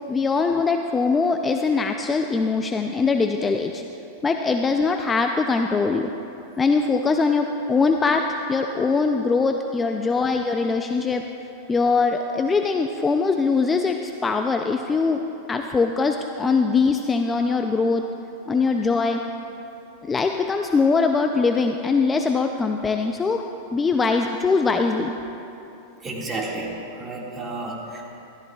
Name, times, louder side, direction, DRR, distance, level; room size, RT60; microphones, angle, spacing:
voice 1, 0.1-3.8 4.2-6.1 6.6-11.2 11.7-15.2 15.5-18.0 18.5-19.2 20.0-23.4 23.7-25.1, left 4 dB, 15° left, 4 dB, 0.4 m, -22 dB
voice 2, 26.0-28.2, right 2 dB, 20° right, -2 dB, 1.9 m, -32 dB
15.0 x 14.0 x 2.3 m, 2.9 s
supercardioid pair, 130°, 0 cm